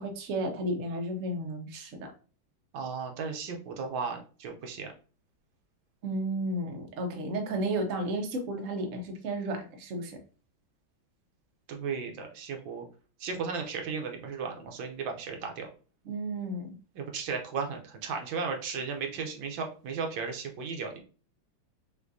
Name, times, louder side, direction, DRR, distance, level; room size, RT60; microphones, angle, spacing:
voice 1, 0.0-2.1 6.0-10.2 16.1-16.7, right 1 dB, 55° right, 3 dB, 0.9 m, -33 dB
voice 2, 2.7-4.9 11.7-12.9 13.2-15.7 16.9-21.0, right 5 dB, 75° right, 3 dB, 1.5 m, -35 dB
5.9 x 2.7 x 2.6 m, 0.37 s
omnidirectional pair, 2.1 m